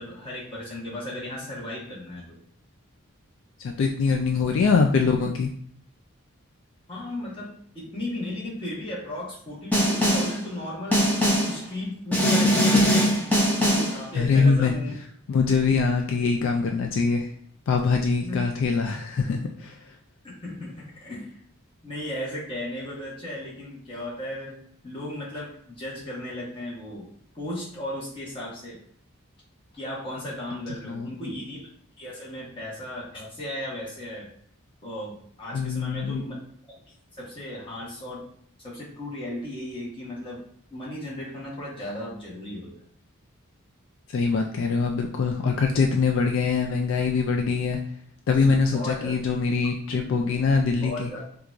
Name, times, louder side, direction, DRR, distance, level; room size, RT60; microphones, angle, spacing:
voice 1, 0.0-2.4 4.1-4.4 6.9-11.1 11.5-13.1 13.5-14.9 18.2-18.5 20.4-21.3 21.8-24.6 24.8-27.1 27.3-28.8 29.7-31.7 32.0-34.3 34.8-36.3 37.2-38.2 38.6-40.4 40.7-42.7 48.7-49.2 49.9-50.4 50.8-51.2, left 1 dB, 25° left, -6 dB, 1.1 m, -35 dB
voice 2, 3.6-5.5 14.1-15.0 15.3-17.3 17.7-19.8 30.8-31.1 35.5-36.2 44.1-47.8 48.3-51.1, left 4 dB, 60° left, 3 dB, 0.3 m, -23 dB
Snare drum, 9.7-10.4 10.9-11.6 12.1-14.0, equal, 5° left, 0.6 m, -21 dB
4.4 x 2.4 x 2.5 m, 0.65 s
head